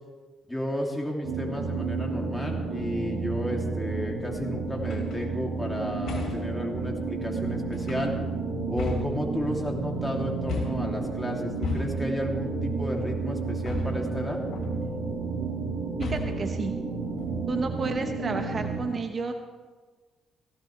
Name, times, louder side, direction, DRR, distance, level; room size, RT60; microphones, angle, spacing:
voice 1, 0.5-8.1 8.7-14.4, left 1 dB, 5° left, -1 dB, 2.7 m, -33 dB
sound 1, 1.2-18.8, right 4 dB, 75° right, 3.5 m, -31 dB
sound 2, 4.8-5.2 6.1-6.6 7.7-8.3 8.8-9.7 10.5-11.0 11.6-12.2 13.7-14.2 14.5-15.0 16.0-16.5 17.2-17.7, left 5 dB, 70° left, 2.8 m, -35 dB
voice 2, 16.0-16.8 17.5-19.3, right 4 dB, 40° right, 5 dB, 1.0 m, -31 dB
17.0 x 16.0 x 3.3 m, 1.4 s
cardioid pair, 90°, 0 cm